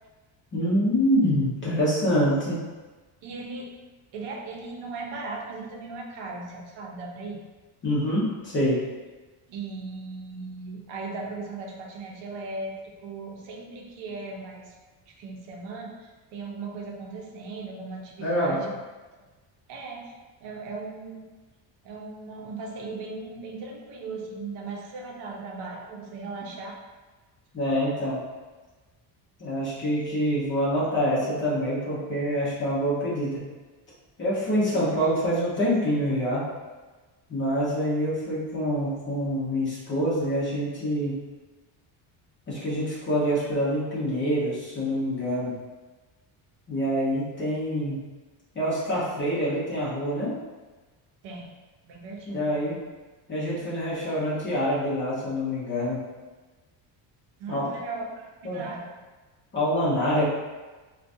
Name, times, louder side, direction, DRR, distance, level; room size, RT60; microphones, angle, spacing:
voice 1, 0.5-2.6 7.8-8.8 18.2-18.6 27.5-28.2 29.4-33.5 34.2-36.5 37.3-41.2 42.5-45.5 46.7-48.0 48.5-50.3 52.3-52.8 53.3-56.0 57.5-57.7 58.4-58.6 59.5-60.2, equal, 25° left, -7 dB, 0.9 m, -26 dB
voice 2, 3.2-3.7 4.1-7.4 9.5-14.7 15.1-18.7 19.7-20.1 20.4-21.3 21.8-26.8 51.2-51.5 51.8-52.4 57.4-58.9, right 3 dB, 70° right, 0 dB, 0.7 m, -37 dB
4.6 x 2.3 x 2.6 m, 1.3 s
cardioid pair, 175°, 44 cm